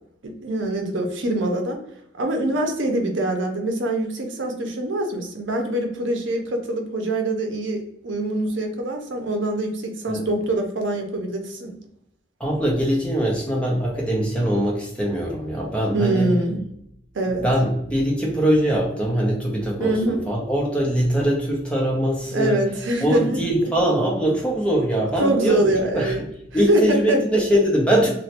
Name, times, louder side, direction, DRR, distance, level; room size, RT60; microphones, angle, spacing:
voice 1, 0.2-1.8 2.2-11.7 15.9-16.6 17.1-17.4 19.8-20.2 22.3-23.4 25.2-26.2 26.5-27.6, right 1 dB, 85° right, 4 dB, 0.6 m, -24 dB
voice 2, 12.4-16.3 17.4-22.6 23.0-25.7 25.9-26.2 26.5-28.1, right 1 dB, 5° left, -2 dB, 0.6 m, -22 dB
3.0 x 2.2 x 2.8 m, 0.76 s
head